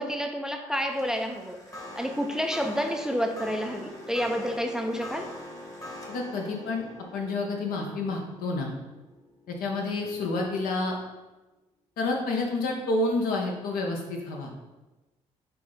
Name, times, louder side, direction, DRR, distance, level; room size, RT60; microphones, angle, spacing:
voice 1, 0.0-1.6 2.0-5.3, equal, 5° right, 5 dB, 0.4 m, -29 dB
homemade chimes, 0.8-10.2, left 1 dB, 20° left, 1.0 m, -43 dB
voice 2, 6.1-6.9 7.1-8.7 9.5-10.9 12.0-14.5, left 2 dB, 75° left, 1 dB, 0.7 m, -29 dB
4.7 x 2.0 x 3.7 m, 1.1 s
supercardioid pair, 65°, 15 cm